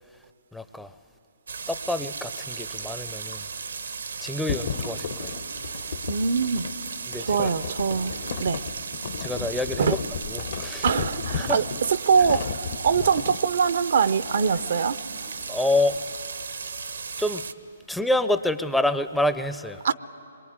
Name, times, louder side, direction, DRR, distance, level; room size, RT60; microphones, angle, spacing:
voice 1, 0.5-0.9 1.7-3.4 4.2-5.4 7.1-7.5 9.2-10.0 10.3-10.9 11.3-11.6 15.5-16.0 17.2-17.5 17.9-19.8, left 1 dB, 5° left, 0.6 m, -27 dB
sound 1, 1.5-17.5, right 5 dB, 80° right, 1.0 m, -36 dB
Zipper (clothing), 3.4-6.1 7.5-8.7 11.3-11.4 11.7-12.7 13.1-13.2 14.0-16.0, left 3 dB, 80° left, 2.9 m, -47 dB
sound 2, 4.5-13.4, left 7 dB, 55° left, 1.1 m, -34 dB
voice 2, 6.1-6.7 7.2-8.1 8.4-8.6 9.8-10.0 10.8-15.0 19.8-19.9, right 6 dB, 65° right, 0.6 m, -23 dB
25.5 x 23.0 x 9.6 m
hypercardioid pair, 140°, 0 cm